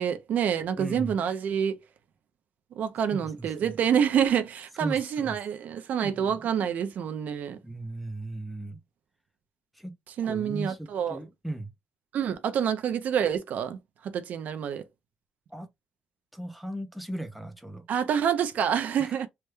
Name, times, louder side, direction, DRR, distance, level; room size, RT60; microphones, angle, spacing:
voice 1, 0.0-1.8 2.8-7.6 10.2-11.2 12.1-13.8 14.0-14.8 17.9-19.3, right 8 dB, 55° right, 0.5 m, -27 dB
voice 2, 0.8-1.2 3.1-3.7 4.8-5.4 6.0-6.4 7.6-8.8 9.7-9.9 10.2-11.7 15.5-15.7 16.3-17.8 19.0-19.3, right 1 dB, ahead, 0.4 m, -37 dB
3.3 x 2.1 x 3.0 m
cardioid pair, 180°, 3 cm